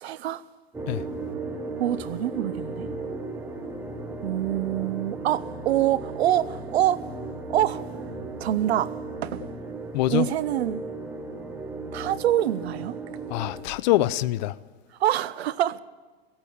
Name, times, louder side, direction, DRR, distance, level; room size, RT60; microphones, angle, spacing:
voice 1, 0.0-0.4 1.8-2.9 4.2-7.0 7.5-8.1 8.4-8.9 9.2-9.4 10.1-10.8 11.9-12.9 15.0-15.8, right 12 dB, 80° right, 0.7 m, -25 dB
sound 1, 0.7-13.6, right 3 dB, 5° right, 1.0 m, -36 dB
voice 2, 9.9-10.3 13.3-14.5, left 16 dB, 45° left, 0.5 m, -24 dB
16.5 x 8.8 x 8.6 m
supercardioid pair, 145°, 31 cm